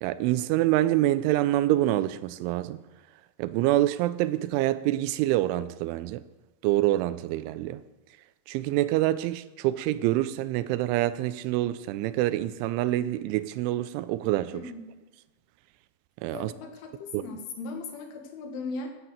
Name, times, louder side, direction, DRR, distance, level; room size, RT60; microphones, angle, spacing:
voice 1, 0.0-2.8 3.4-6.2 6.6-7.8 8.5-14.6 16.2-16.5 17.1-17.2, right 15 dB, 85° right, 3.0 m, -26 dB
voice 2, 14.5-14.8 16.3-18.9, left 3 dB, 85° left, 4.2 m, -38 dB
15.0 x 9.1 x 6.5 m
omnidirectional pair, 5.4 m